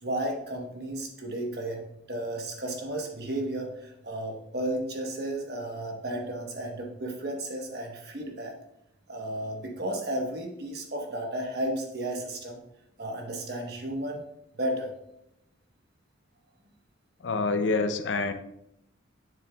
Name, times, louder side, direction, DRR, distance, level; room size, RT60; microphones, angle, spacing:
voice 1, 0.0-1.8 2.1-8.5 9.1-12.6 13.0-14.2 14.6-14.9, right 1 dB, 55° right, 2 dB, 1.1 m, -33 dB
voice 2, 17.2-18.3, left 3 dB, 75° left, 9 dB, 0.6 m, -27 dB
7.1 x 6.5 x 2.3 m, 0.81 s
head